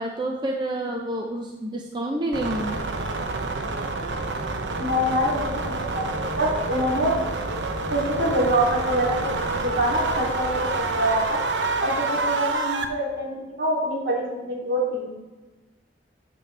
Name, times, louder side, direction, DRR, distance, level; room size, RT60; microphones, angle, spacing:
voice 1, 0.0-2.9, right 1 dB, 25° right, 0 dB, 0.6 m, -28 dB
sound 1, 2.3-12.9, right 3 dB, 85° right, 0.8 m, -28 dB
voice 2, 4.8-7.2 7.9-11.4 11.8-15.1, right 1 dB, 65° right, -4 dB, 2.9 m, -25 dB
12.0 x 7.0 x 3.4 m, 1.2 s
head